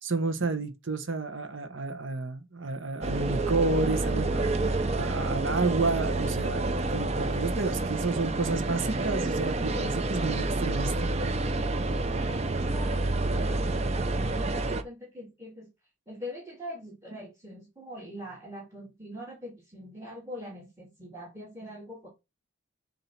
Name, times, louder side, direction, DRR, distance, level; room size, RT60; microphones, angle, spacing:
voice 1, 0.0-11.1, right 3 dB, 65° right, 1.1 m, -31 dB
sound 1, 3.0-14.8, right 2 dB, 30° right, 0.6 m, -28 dB
voice 2, 12.1-15.7 16.1-22.1, equal, 15° right, 2.2 m, -43 dB
7.1 x 2.8 x 5.8 m
head